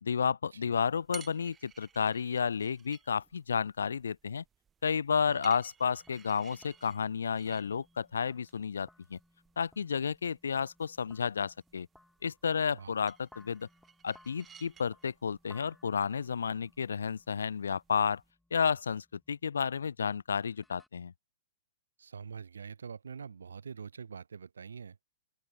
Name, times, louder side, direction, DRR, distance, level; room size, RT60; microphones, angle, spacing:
voice 1, 0.0-4.4 4.8-9.2 9.6-11.9 12.2-13.7 14.0-18.2 18.5-21.1, left 6 dB, 70° left, 0.4 m, -31 dB
sound 1, 0.8-18.3, right 7 dB, 15° right, 0.9 m, -58 dB
Kochtopf Groove, 6.0-20.9, left 1 dB, 5° left, 7.5 m, -64 dB
voice 2, 22.0-25.0, right 6 dB, 70° right, 0.7 m, -45 dB
open air
figure-of-eight pair, 110°, 0 cm